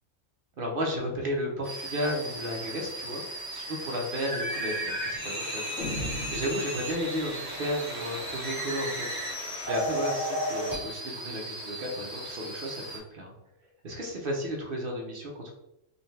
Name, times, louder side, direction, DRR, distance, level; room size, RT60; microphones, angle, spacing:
voice 1, 0.6-3.2 3.5-9.2 9.7-13.3 13.8-15.5, equal, 50° right, 0 dB, 0.8 m, -33 dB
sound 1, 1.6-13.0, right 1 dB, 30° right, 1.3 m, -35 dB
sound 2, 5.8-7.4, left 1 dB, 70° left, 1.0 m, -37 dB
5.3 x 2.2 x 3.2 m, 0.88 s
omnidirectional pair, 1.4 m